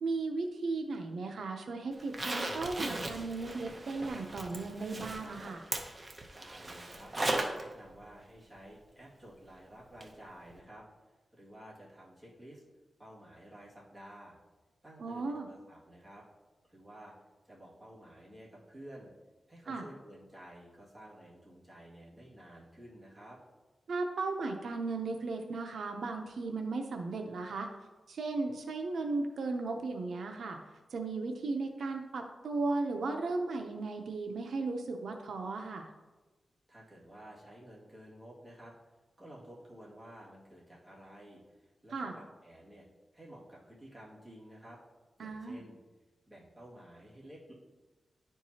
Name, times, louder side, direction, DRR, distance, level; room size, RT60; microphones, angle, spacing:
voice 1, 0.0-5.6 15.0-15.5 19.7-19.8 23.9-27.7 28.1-30.6 30.9-35.9 41.9-42.1 45.2-45.6, right 3 dB, 85° right, 3 dB, 0.6 m, -36 dB
Zipper (clothing), 2.0-7.6 8.0-8.1 10.0-10.1 10.5-10.6, right 2 dB, 25° right, 0.7 m, -37 dB
voice 2, 6.3-12.6 13.0-14.4 14.8-16.2 16.7-17.1 17.4-19.1 19.5-23.4 36.7-38.7 39.2-42.9 43.1-44.8 45.2-45.8 46.3-47.5, right 1 dB, 10° right, -7 dB, 2.0 m, -52 dB
10.5 x 4.6 x 2.8 m, 1.2 s
wide cardioid pair, 120°, 0 cm